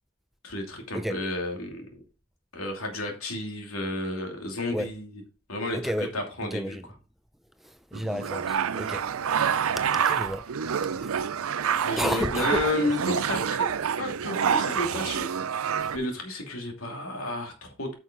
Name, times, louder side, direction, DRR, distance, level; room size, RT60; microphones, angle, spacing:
voice 1, 0.4-2.0 2.5-5.2 5.5-6.8 11.9-13.7 14.0-15.3 15.9-17.9, left 1 dB, 80° left, 2.7 m, -32 dB
voice 2, 5.7-6.1 6.5-6.8 7.6-9.1 9.9-10.4 11.0-11.1 12.0-12.6, equal, ahead, 0.4 m, -31 dB
sound 1, 7.9-16.0, right 7 dB, 75° right, 0.5 m, -27 dB
9.2 x 6.1 x 3.8 m
head